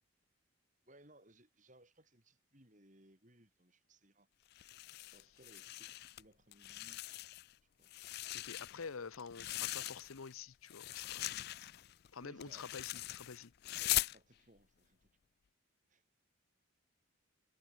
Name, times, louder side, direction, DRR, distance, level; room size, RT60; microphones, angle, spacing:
voice 1, 0.9-4.3 5.1-7.1 7.8-7.9 12.2-12.7 13.8-15.1 15.9-16.0, right 1 dB, 35° right, 6.6 m, -64 dB
sound 1, 4.5-6.2 6.5-7.5 7.8-10.3 10.7-14.2, left 16 dB, 50° left, 0.3 m, -41 dB
voice 2, 8.3-11.4 12.1-13.5, left 5 dB, 85° left, 0.8 m, -48 dB
head